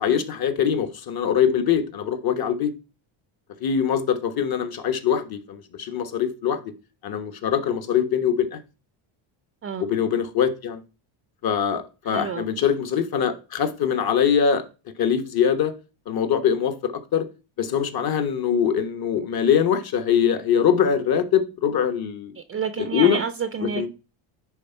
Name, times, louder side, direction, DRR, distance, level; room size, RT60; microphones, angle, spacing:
voice 1, 0.0-2.7 3.6-6.6 7.0-8.6 9.8-10.8 11.4-14.6 15.0-15.7 16.1-17.3 17.6-22.3 22.8-23.2 23.8-23.9, left 8 dB, 45° left, 1.2 m, -23 dB
voice 2, 12.0-12.5 22.4-23.9, right 6 dB, 25° right, 0.5 m, -29 dB
9.7 x 3.5 x 4.4 m
cardioid pair, 95°, 50 cm